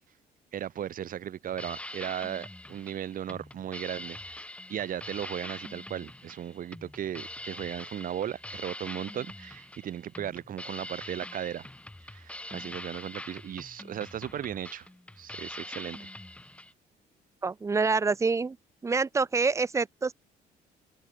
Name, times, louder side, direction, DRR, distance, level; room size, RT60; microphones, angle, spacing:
voice 1, 0.5-4.4 4.7-11.7 12.0-14.9 15.2-16.1, right 10 dB, 55° right, 3.9 m, -36 dB
sound 1, 1.4-16.7, left 1 dB, 5° left, 3.3 m, -44 dB
voice 2, 17.4-18.5 18.8-20.1, right 4 dB, 15° right, 0.6 m, -26 dB
cardioid pair, 110°, 17 cm